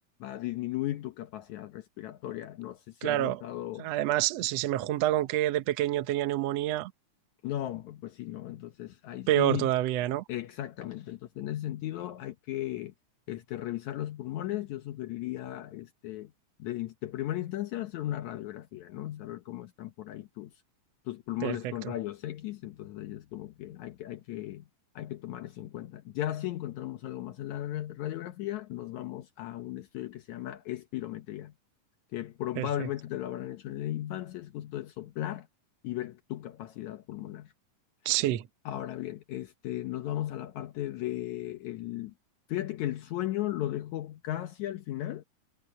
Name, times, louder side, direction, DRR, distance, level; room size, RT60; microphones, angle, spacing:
voice 1, 0.2-3.9 7.4-9.7 10.3-12.9 13.3-16.3 16.6-20.5 21.1-24.7 25.0-31.5 32.1-35.5 35.8-37.5 38.7-42.1 42.5-45.2, left 14 dB, 70° left, 2.2 m, -36 dB
voice 2, 3.0-3.4 3.8-6.9 9.3-10.2 21.4-21.6 21.8-21.9 32.6-32.9 38.1-38.4, right 14 dB, 65° right, 1.8 m, -27 dB
omnidirectional pair, 3.6 m